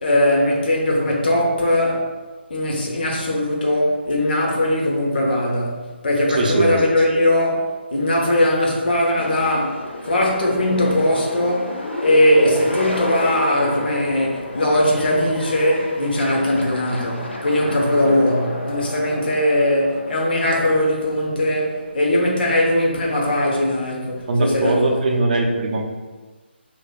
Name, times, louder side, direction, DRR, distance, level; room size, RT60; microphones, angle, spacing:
voice 1, 0.0-2.1 2.5-25.0, left 1 dB, 55° left, -2 dB, 0.9 m, -20 dB
voice 2, 6.3-6.7 24.3-25.8, right 2 dB, 45° right, 0 dB, 0.5 m, -20 dB
sound 1, 9.2-22.8, left 1 dB, 80° left, 0.7 m, -31 dB
4.7 x 2.5 x 2.3 m, 1.3 s
figure-of-eight pair, 150°, 6 cm